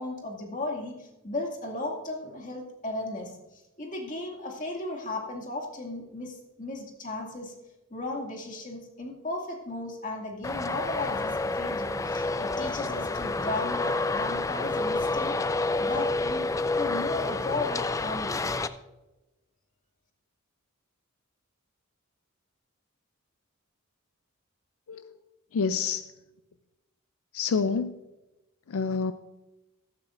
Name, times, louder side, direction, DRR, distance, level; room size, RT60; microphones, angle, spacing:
voice 1, 0.0-7.5 7.9-15.4 15.8-16.5 16.8-18.4, left 2 dB, 35° left, 1 dB, 2.3 m, -35 dB
Traffic noise roadway noise, 10.4-18.7, left 3 dB, 15° left, 0.3 m, -29 dB
voice 2, 25.5-26.1 27.3-28.0 28.7-29.1, left 5 dB, 80° left, 11 dB, 0.5 m, -28 dB
14.5 x 12.5 x 2.6 m, 1.0 s
head